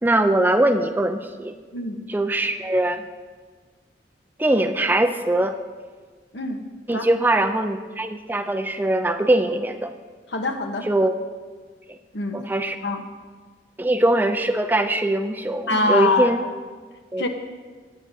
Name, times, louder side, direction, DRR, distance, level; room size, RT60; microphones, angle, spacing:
voice 1, 0.0-1.5 2.1-3.0 4.4-5.6 6.9-9.9 10.9-11.1 11.9-12.0 12.5-12.8 13.8-16.4 17.1-17.2, right 1 dB, 10° right, 7 dB, 0.4 m, -21 dB
voice 2, 10.3-10.9 12.1-12.4 12.8-13.0 15.7-16.3 17.2-17.3, left 3 dB, 70° left, 4 dB, 1.1 m, -24 dB
17.0 x 9.1 x 2.7 m, 1.5 s
head